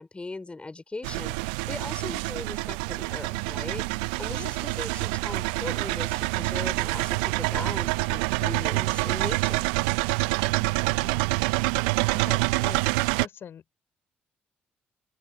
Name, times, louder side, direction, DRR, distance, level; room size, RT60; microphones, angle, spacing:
voice 1, 0.0-9.7, left 3 dB, 25° left, 4.6 m, -39 dB
sound 1, 1.0-13.3, right 27 dB, 80° right, 0.4 m, -27 dB
voice 2, 10.6-11.2 12.1-12.8 13.2-13.8, left 8 dB, 55° left, 5.4 m, -44 dB
open air
hypercardioid pair, 50°, 5 cm